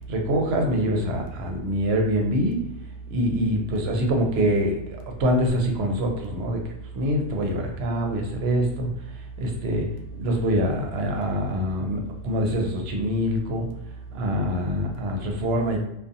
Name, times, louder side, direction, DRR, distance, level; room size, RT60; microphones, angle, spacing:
voice 1, 0.1-2.6 3.1-6.6 6.9-8.9 9.4-9.9 10.2-13.7 14.1-15.8, equal, 70° right, 2 dB, 0.8 m, -24 dB
2.6 x 2.2 x 2.5 m, 0.82 s
omnidirectional pair, 1.1 m